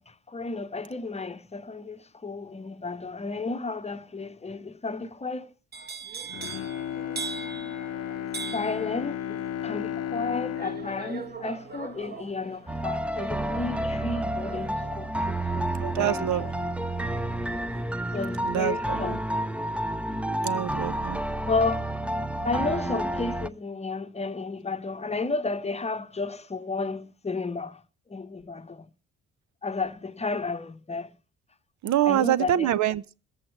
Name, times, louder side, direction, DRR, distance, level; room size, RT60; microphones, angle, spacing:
voice 1, 0.0-5.5 8.5-16.5 18.1-19.2 21.4-21.9 22.4-27.8 28.1-28.9 29.6-31.1 32.1-32.7, left 3 dB, 20° left, 0.9 m, -32 dB
sound 1, 5.7-17.7 18.0-18.4, right 5 dB, 30° right, 2.1 m, -42 dB
Bowed string instrument, 6.2-12.5 12.9-13.0, left 10 dB, 55° left, 0.7 m, -35 dB
sound 2, 12.7-23.5, right 1 dB, 5° right, 0.6 m, -30 dB
voice 2, 15.8-16.5 18.4-19.2 20.4-21.2 31.8-33.0, right 12 dB, 70° right, 0.7 m, -25 dB
23.0 x 7.7 x 4.4 m
cardioid pair, 90°, 30 cm